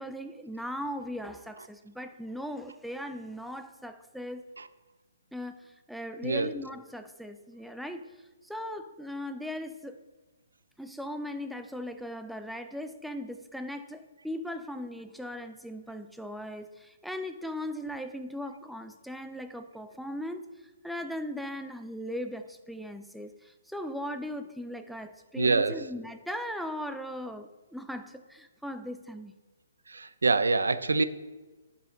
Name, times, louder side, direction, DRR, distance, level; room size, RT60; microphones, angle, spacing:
voice 1, 0.0-4.5 5.3-8.2 8.4-10.0 10.8-29.3, equal, ahead, 8 dB, 0.5 m, -38 dB
voice 2, 25.4-25.9 29.9-31.0, right 3 dB, 90° right, 13 dB, 0.6 m, -25 dB
11.5 x 5.6 x 3.9 m, 1.2 s
hypercardioid pair, 145°, 0 cm